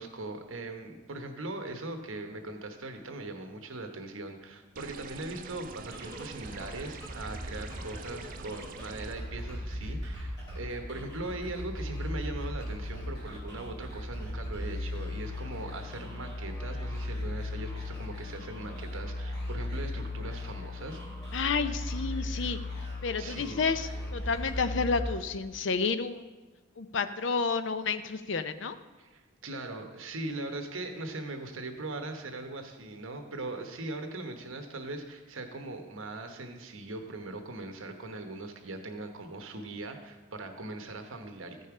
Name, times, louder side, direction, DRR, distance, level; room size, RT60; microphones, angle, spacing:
voice 1, 0.0-21.0 23.2-23.6 29.0-41.7, right 2 dB, 75° right, 6 dB, 1.1 m, -40 dB
sound 1, 4.8-9.2, right 5 dB, 40° right, 0.4 m, -46 dB
sound 2, 5.9-25.6, left 1 dB, 20° left, 3.6 m, -37 dB
voice 2, 21.3-22.6 23.0-26.3 26.8-28.8, left 4 dB, 60° left, 11 dB, 0.5 m, -30 dB
14.5 x 5.5 x 4.8 m, 1.2 s
head